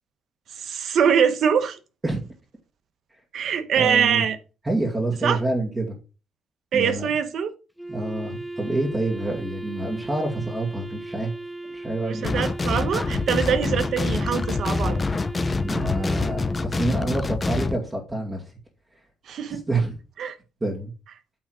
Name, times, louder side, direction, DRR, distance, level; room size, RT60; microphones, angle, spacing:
voice 1, 0.6-1.8 3.3-4.4 5.2-5.4 6.7-7.5 12.0-15.0 19.3-19.6 20.2-20.4, right 7 dB, 65° right, 1.0 m, -23 dB
voice 2, 3.8-4.2 4.6-6.0 6.7-7.1 7.9-11.3 11.7-12.3 13.1-13.2 15.6-18.4 19.5-20.0 20.6-20.9, right 2 dB, 20° right, 2.1 m, -27 dB
Wind instrument woodwind instrument, 7.8-17.0, right 2 dB, ahead, 0.9 m, -37 dB
sound 1, 12.2-17.8, left 3 dB, 30° left, 0.7 m, -26 dB
8.6 x 3.6 x 6.1 m
cardioid pair, 90°, 0 cm